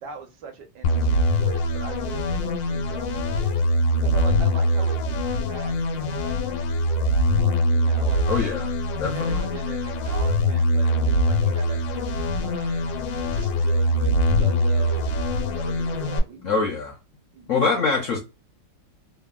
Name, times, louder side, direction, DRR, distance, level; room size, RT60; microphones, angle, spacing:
voice 1, 0.0-3.7 4.0-8.2 9.1-13.0 13.2-16.7 17.3-17.7, right 5 dB, 75° right, 1.3 m, -41 dB
sound 1, 0.8-16.2, left 1 dB, 85° left, 1.3 m, -23 dB
voice 2, 8.3-9.4 16.4-16.9 17.5-18.2, left 4 dB, 65° left, 0.7 m, -24 dB
3.3 x 2.0 x 2.2 m
omnidirectional pair, 2.0 m